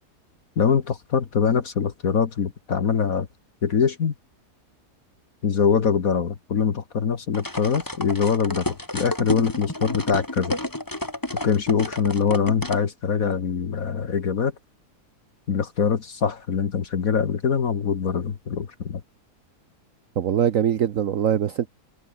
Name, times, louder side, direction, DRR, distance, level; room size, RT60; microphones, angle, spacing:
voice 1, 0.6-3.3 3.6-4.1 5.4-8.6 8.9-10.6 11.4-14.5 15.5-19.0, left 6 dB, 60° left, 1.8 m, -23 dB
sound 1, 7.3-12.8, left 1 dB, 10° left, 2.4 m, -30 dB
voice 2, 20.2-21.7, right 9 dB, 60° right, 1.2 m, -22 dB
omnidirectional pair, 1.7 m